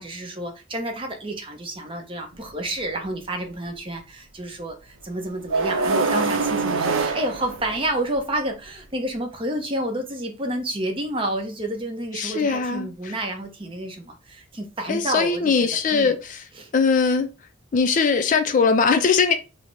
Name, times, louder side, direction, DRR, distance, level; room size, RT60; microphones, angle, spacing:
voice 1, 0.0-16.2 16.6-16.7, right 1 dB, 25° right, 0.6 m, -30 dB
sound 1, 2.3-2.4 5.5-8.2, right 4 dB, 75° right, 0.5 m, -24 dB
voice 2, 12.1-13.1 14.9-16.4 16.7-17.3 17.7-19.3, left 5 dB, 40° left, 0.3 m, -21 dB
3.2 x 2.0 x 3.9 m
head